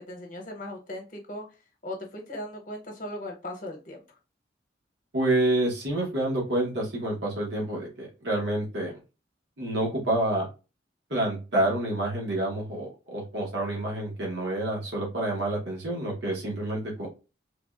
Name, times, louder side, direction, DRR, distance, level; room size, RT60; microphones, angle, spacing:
voice 1, 0.1-1.4 1.8-4.0, left 1 dB, 45° left, 1 dB, 0.8 m, -38 dB
voice 2, 5.1-8.9 9.6-10.5 11.1-17.1, right 1 dB, 70° right, -2 dB, 0.9 m, -28 dB
3.3 x 2.1 x 2.3 m, 0.30 s
head